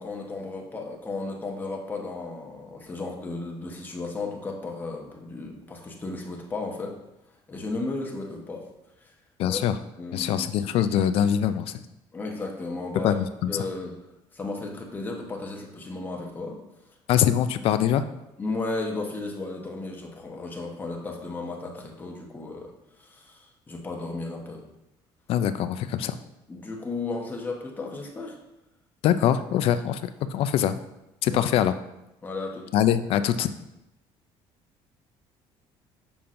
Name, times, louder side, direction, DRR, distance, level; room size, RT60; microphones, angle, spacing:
voice 1, 0.0-6.9 7.5-8.7 9.0-9.1 9.5-9.6 10.0-10.7 12.1-13.1 13.5-13.9 14.3-16.6 18.4-22.7 22.9-24.6 26.5-28.4 31.3-31.4 32.2-32.7, left 3 dB, 15° left, 0 dB, 1.0 m, -34 dB
voice 2, 9.4-9.8 10.1-11.8 13.0-13.5 17.1-18.1 25.3-26.2 29.0-30.8 31.2-31.8 32.7-33.5, left 10 dB, 60° left, 12 dB, 0.4 m, -23 dB
6.9 x 5.7 x 2.5 m, 0.90 s
cardioid pair, 145°, 11 cm